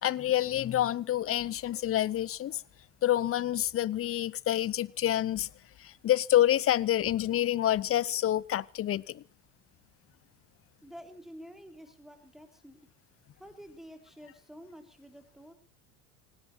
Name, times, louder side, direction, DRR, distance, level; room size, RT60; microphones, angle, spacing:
voice 1, 0.0-2.6 3.0-5.5 5.8-9.2, left 12 dB, 35° left, 0.7 m, -27 dB
voice 2, 10.8-12.8 13.4-15.5, equal, ahead, 3.7 m, -49 dB
18.0 x 17.5 x 4.5 m
supercardioid pair, 85°, 40 cm